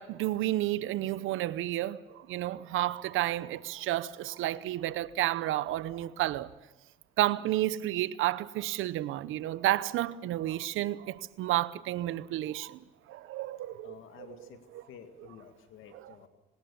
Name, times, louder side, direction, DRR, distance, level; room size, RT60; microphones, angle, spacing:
voice 1, 0.0-6.5 7.2-12.8 13.1-14.4 14.7-14.8 15.9-16.1, right 15 dB, 90° right, 0.8 m, -31 dB
voice 2, 13.8-14.6 14.9-16.3, left 8 dB, 85° left, 1.9 m, -51 dB
24.0 x 19.5 x 7.1 m
cardioid pair, 90°, 20 cm